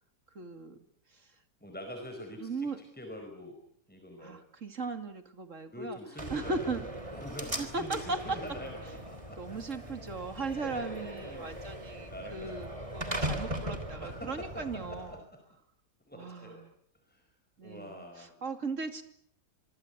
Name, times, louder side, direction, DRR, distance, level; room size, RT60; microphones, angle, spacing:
voice 1, 0.3-0.8 1.1-1.3 2.4-2.8 4.2-6.0 6.3-6.8 7.6-8.2 9.4-15.2 16.1-16.7 17.6-19.0, right 3 dB, 45° right, 8 dB, 2.8 m, -38 dB
voice 2, 1.6-2.7 3.0-3.6 3.9-4.4 5.7-6.8 7.1-9.6 10.1-10.3 10.6-10.8 11.2-11.5 12.1-12.6 14.0-15.4 16.1-16.6 17.1-17.3 17.6-18.4, left 1 dB, 5° left, 3 dB, 4.9 m, -44 dB
Slam, 6.2-15.2, right 1 dB, 20° right, 3.2 m, -39 dB
26.5 x 24.0 x 8.2 m, 0.66 s
omnidirectional pair, 1.9 m